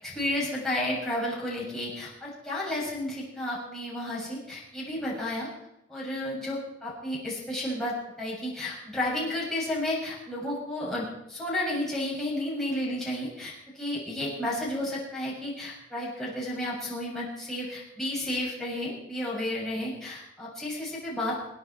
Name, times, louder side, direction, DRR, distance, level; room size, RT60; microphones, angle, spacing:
voice 1, 0.0-5.5 5.9-21.4, left 1 dB, ahead, -7 dB, 7.0 m, -32 dB
27.5 x 9.6 x 4.6 m, 0.84 s
head